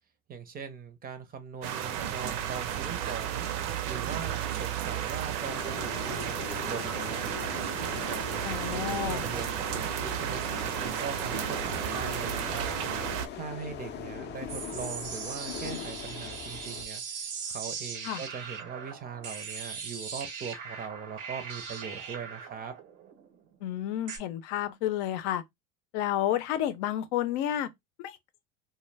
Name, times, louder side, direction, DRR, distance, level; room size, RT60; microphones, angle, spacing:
voice 1, 0.3-3.4 3.9-7.5 8.0-12.6 12.9-17.0 17.4-22.7, right 6 dB, 25° right, 0.5 m, -41 dB
sound 1, 1.6-13.3, right 10 dB, 70° right, 0.6 m, -33 dB
sound 2, 5.4-16.8, left 8 dB, 30° left, 0.5 m, -41 dB
voice 2, 8.4-9.2 18.0-18.2 23.6-25.4 25.9-27.7 28.0-28.2, left 11 dB, 70° left, 0.6 m, -30 dB
sound 3, 14.5-24.2, right 6 dB, 90° right, 0.9 m, -40 dB
2.2 x 2.1 x 3.2 m
supercardioid pair, 110°, 37 cm